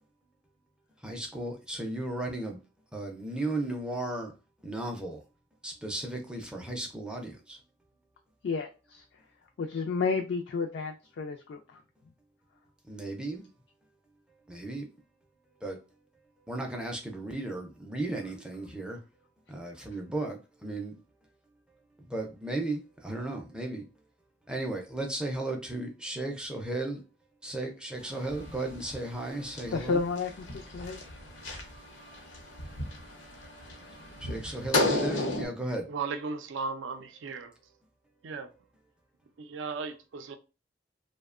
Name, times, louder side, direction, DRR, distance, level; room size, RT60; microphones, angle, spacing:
voice 1, 1.0-2.6 2.9-4.3 4.6-5.2 5.6-7.6 12.8-13.5 14.5-14.9 15.6-15.8 16.5-19.0 19.5-21.0 22.1-23.9 24.5-27.0 27.4-30.0 34.2-35.9, right 2 dB, 5° right, 0.4 m, -35 dB
voice 2, 8.4-9.0 9.6-11.8 29.7-31.0, left 5 dB, 65° left, 0.3 m, -31 dB
sound 1, 28.0-35.5, left 1 dB, 85° left, 0.7 m, -34 dB
voice 3, 35.9-37.5 38.2-38.5 39.4-40.3, right 4 dB, 85° right, 0.4 m, -36 dB
2.7 x 2.1 x 2.4 m
head